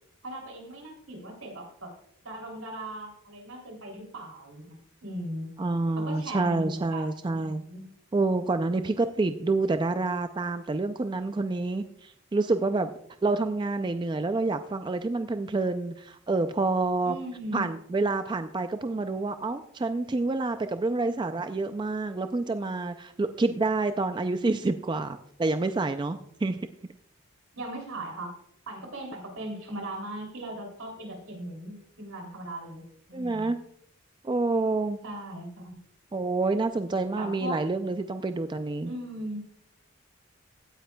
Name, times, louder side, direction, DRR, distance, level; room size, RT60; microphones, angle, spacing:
voice 1, 0.2-1.9 2.2-5.5 6.0-7.8 17.0-17.7 27.5-28.3 28.7-33.5 35.0-35.8 37.1-37.6 38.8-39.5, right 1 dB, 85° right, 3 dB, 3.0 m, -38 dB
voice 2, 5.6-7.6 8.1-12.9 13.2-17.2 17.5-26.6 33.1-33.6 34.2-35.0 36.1-38.9, right 3 dB, 20° right, 9 dB, 0.3 m, -28 dB
16.0 x 9.4 x 2.2 m, 0.70 s
head